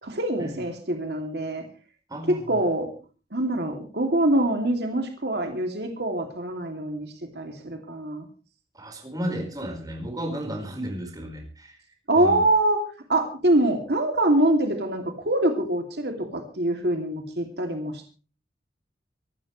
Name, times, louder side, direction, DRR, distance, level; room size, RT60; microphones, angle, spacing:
voice 1, 0.0-1.6 2.3-2.9 3.3-8.3 12.1-12.8 13.1-18.2, right 1 dB, 60° right, 3 dB, 2.8 m, -24 dB
voice 2, 2.1-2.6 8.7-11.8 12.1-12.4, equal, 20° right, 3 dB, 4.8 m, -33 dB
25.0 x 12.5 x 3.3 m, 0.37 s
head